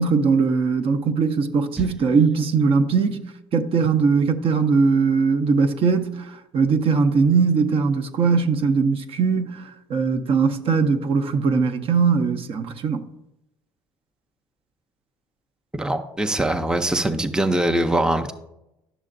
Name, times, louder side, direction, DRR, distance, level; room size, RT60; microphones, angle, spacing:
voice 1, 0.0-3.2 3.5-13.1, right 5 dB, 50° right, 0.7 m, -20 dB
voice 2, 15.7-18.3, right 1 dB, 5° right, 0.6 m, -22 dB
11.0 x 6.4 x 2.6 m
hypercardioid pair, 65°, 13 cm